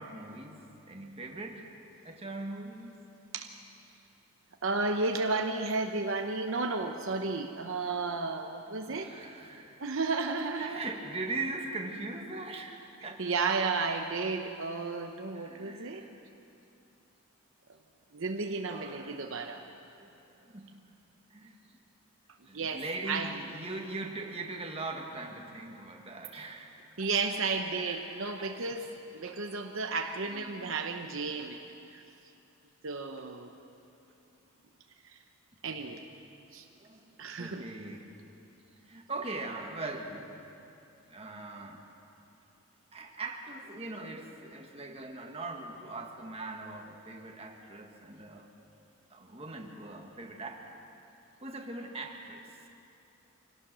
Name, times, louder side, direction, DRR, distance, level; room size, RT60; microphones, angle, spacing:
voice 1, 0.0-1.7 2.0-3.1 8.8-9.8 10.6-13.2 13.6-13.7 15.3-16.2 18.7-19.2 19.9-20.7 21.3-21.8 22.4-26.7 27.7-28.6 30.3-30.9 35.9-36.2 36.7-37.0 37.4-38.0 38.8-40.6 41.1-41.8 42.9-48.5 49.1-50.8 51.4-52.4, right 2 dB, 25° right, 1 dB, 1.7 m, -41 dB
voice 2, 4.6-9.1 9.8-10.8 13.2-16.0 18.1-19.6 22.5-23.4 27.0-31.6 31.9-32.0 32.8-33.5 35.0-35.2 35.6-36.0 36.5-36.7 37.2-37.6, right 3 dB, 60° right, 4 dB, 0.8 m, -33 dB
24.5 x 17.5 x 6.2 m, 2.8 s
head